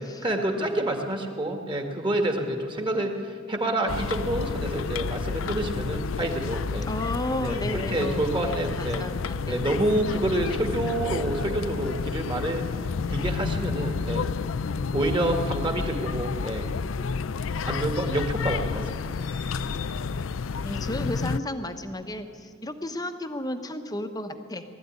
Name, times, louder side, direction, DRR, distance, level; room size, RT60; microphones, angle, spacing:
voice 1, 0.2-6.9 7.4-9.0 9.5-12.6 13.1-14.3 14.9-16.7 17.6-18.9, right 1 dB, 25° right, 4 dB, 1.8 m, -28 dB
sound 1, 3.9-21.4, left 5 dB, 65° left, 0.5 m, -30 dB
voice 2, 6.8-9.6 20.6-24.6, left 1 dB, 20° left, 8 dB, 1.1 m, -33 dB
20.0 x 13.5 x 9.8 m, 2.3 s
head